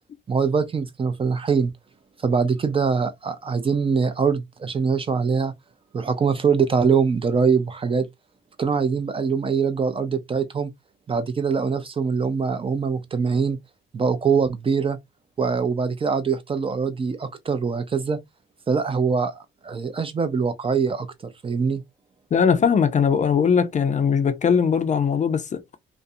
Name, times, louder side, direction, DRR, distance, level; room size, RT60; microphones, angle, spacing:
voice 1, 0.3-1.7 2.2-5.5 5.9-8.1 8.6-10.7 11.1-13.6 13.9-15.0 15.4-18.2 18.7-21.1 21.4-21.8, right 5 dB, 25° right, 0.4 m, -23 dB
voice 2, 22.3-25.6, left 6 dB, 40° left, 0.4 m, -20 dB
2.5 x 2.1 x 2.6 m
cardioid pair, 90°, 20 cm